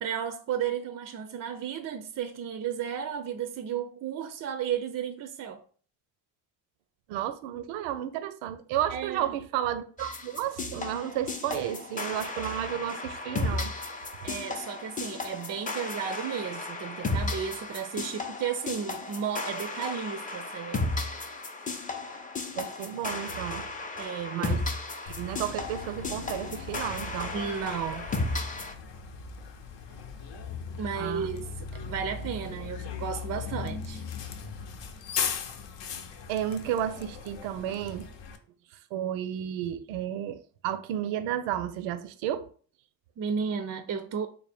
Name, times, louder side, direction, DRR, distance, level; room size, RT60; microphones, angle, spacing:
voice 1, 0.0-5.6 8.9-9.3 14.2-20.8 24.0-24.5 27.3-28.1 30.8-34.0 43.2-44.3, right 7 dB, 35° right, 0.4 m, -33 dB
voice 2, 7.1-13.7 22.5-23.7 24.3-24.6 25.0-27.3 31.0-31.3 36.3-38.1 38.9-42.5, right 11 dB, 85° right, 0.6 m, -32 dB
sound 1, 10.0-28.7, left 3 dB, 20° left, 0.5 m, -34 dB
Bus, 25.1-38.4, left 6 dB, 65° left, 0.7 m, -38 dB
3.4 x 2.2 x 4.2 m
supercardioid pair, 90°, 47 cm